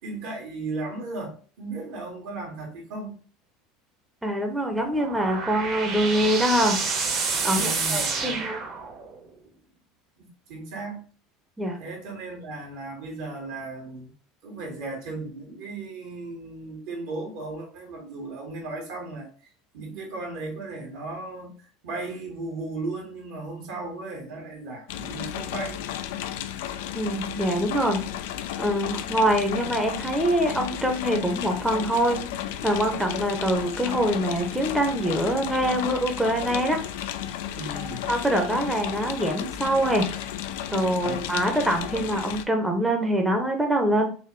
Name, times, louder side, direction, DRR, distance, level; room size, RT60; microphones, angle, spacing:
voice 1, 0.0-3.2 7.5-8.5 10.2-11.0 11.8-14.1 14.4-19.3 19.7-21.5 21.8-25.8 37.5-38.1 41.0-41.2, right 2 dB, 75° right, 0 dB, 1.7 m, -36 dB
voice 2, 4.2-6.8 7.4-8.6 11.6-11.8 26.9-28.0 28.6-32.2 32.6-36.8 37.7-40.1 40.7-44.1, right 1 dB, 5° right, 2 dB, 0.7 m, -24 dB
sound 1, 4.7-9.2, right 4 dB, 50° right, 1.1 m, -29 dB
sound 2, 24.9-42.4, left 11 dB, 75° left, 0.3 m, -33 dB
4.0 x 2.5 x 3.1 m, 0.40 s
supercardioid pair, 95°, 0 cm